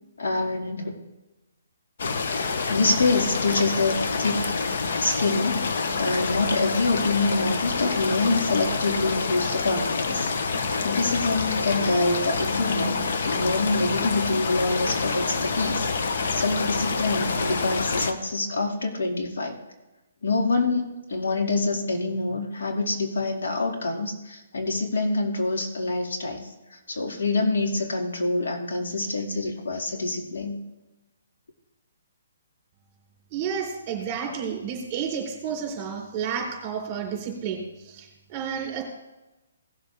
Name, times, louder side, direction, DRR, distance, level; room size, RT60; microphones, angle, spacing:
voice 1, 0.2-1.0 2.7-4.6 5.0-10.3 10.8-13.0 13.2-19.6 20.2-26.4 26.7-30.6, left 3 dB, 80° left, 2 dB, 2.4 m, -26 dB
sound 1, 2.0-18.1, left 4 dB, 60° left, 1.0 m, -27 dB
voice 2, 33.3-38.8, right 7 dB, 25° right, 0 dB, 3.9 m, -31 dB
18.0 x 7.3 x 3.5 m, 1.0 s
hypercardioid pair, 155°, 0 cm